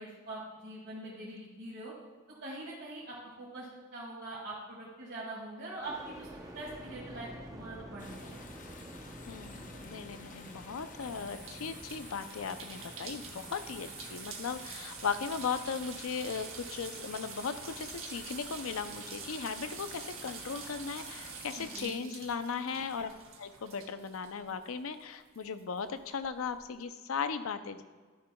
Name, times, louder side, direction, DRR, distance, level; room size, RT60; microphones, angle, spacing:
voice 1, 0.0-1.9 2.4-6.3 6.5-8.3 21.5-22.1, right 2 dB, 50° right, -9 dB, 2.2 m, -43 dB
sound 1, 5.8-19.8 20.3-21.0, right 1 dB, 15° right, 0.7 m, -51 dB
sound 2, 8.0-21.8, left 3 dB, 40° left, 0.8 m, -51 dB
voice 2, 9.3-23.1 23.4-27.8, left 5 dB, 80° left, 11 dB, 0.5 m, -37 dB
sound 3, 11.0-25.0 25.3-26.6, right 7 dB, 70° right, 1.0 m, -47 dB
12.5 x 6.9 x 2.3 m, 1.4 s
head